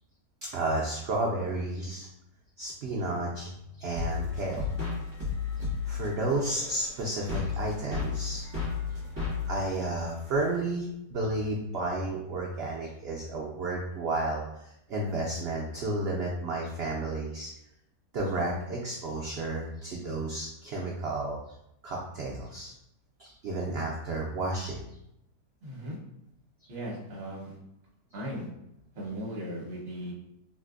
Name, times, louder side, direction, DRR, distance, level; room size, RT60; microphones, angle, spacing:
voice 1, 0.4-2.1 2.6-4.7 5.9-8.7 9.5-17.5 18.1-21.4 21.8-22.7 23.2-24.8, right 2 dB, 85° right, -2 dB, 0.5 m, -32 dB
sound 1, 4.0-10.6, left 5 dB, 25° right, 1.3 m, -34 dB
voice 2, 25.6-26.0 26.7-27.6 28.1-28.5 28.9-30.1, equal, 45° right, -4 dB, 1.1 m, -37 dB
3.8 x 2.5 x 2.4 m, 0.82 s
omnidirectional pair, 1.7 m